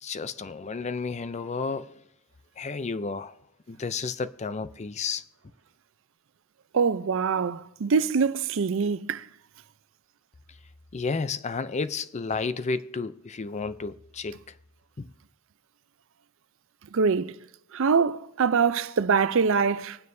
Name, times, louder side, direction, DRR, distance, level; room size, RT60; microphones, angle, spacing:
voice 1, 0.0-2.0 2.6-3.4 3.7-5.2 10.9-14.5 15.0-15.1, left 4 dB, 30° left, 0.4 m, -32 dB
voice 2, 6.7-9.2 16.9-17.3 17.7-20.0, right 5 dB, 65° right, 0.5 m, -24 dB
25.0 x 9.5 x 2.7 m
head